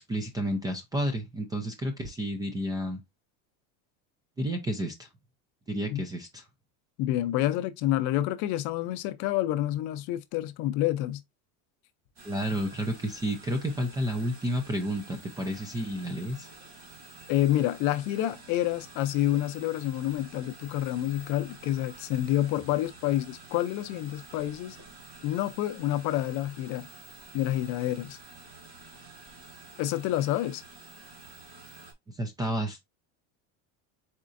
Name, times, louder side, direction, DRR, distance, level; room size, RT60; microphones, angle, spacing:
voice 1, 0.1-3.0 4.4-5.1 5.7-6.4 12.2-16.5 32.2-32.9, equal, 10° right, 0.4 m, -31 dB
voice 2, 7.0-11.2 17.3-24.8 25.2-26.9 27.3-28.2 29.8-30.6, left 14 dB, 50° left, 0.6 m, -28 dB
sound 1, 12.2-31.9, right 3 dB, 40° right, 1.8 m, -49 dB
4.3 x 3.7 x 2.5 m
cardioid pair, 160°, 37 cm